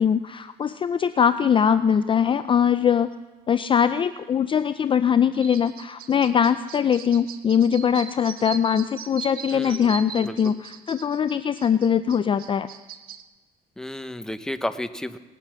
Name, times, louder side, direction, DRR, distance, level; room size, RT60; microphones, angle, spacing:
voice 1, 0.0-3.1 3.5-12.7, left 8 dB, 30° left, 12 dB, 0.4 m, -21 dB
sound 1, 5.4-13.2, right 8 dB, 60° right, 0.8 m, -40 dB
voice 2, 9.5-9.9 10.2-10.5 13.8-15.2, left 1 dB, 5° left, 10 dB, 0.7 m, -32 dB
18.5 x 9.9 x 6.2 m, 1.2 s
cardioid pair, 110°, 17 cm